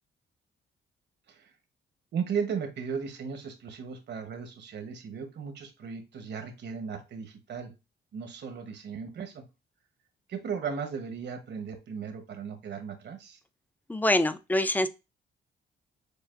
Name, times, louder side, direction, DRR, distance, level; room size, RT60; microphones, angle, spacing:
voice 1, 2.1-7.7 8.1-9.4 10.3-13.4, right 6 dB, 60° right, 1.1 m, -36 dB
voice 2, 13.9-14.9, left 1 dB, 10° left, 0.4 m, -25 dB
6.7 x 2.4 x 2.5 m
cardioid pair, 90°, 20 cm